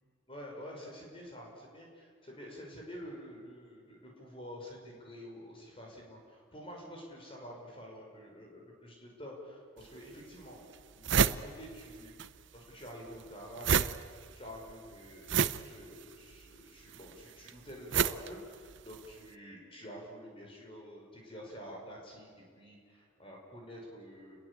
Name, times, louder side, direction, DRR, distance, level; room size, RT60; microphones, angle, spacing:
voice 1, 0.3-10.6 10.9-12.1 12.5-24.4, equal, 25° left, 0 dB, 6.1 m, -48 dB
sound 1, 9.8-9.9 10.4-10.5 10.7-12.3 12.5-19.1, right 7 dB, 60° right, 0.7 m, -31 dB
29.5 x 22.0 x 8.6 m, 2.1 s
head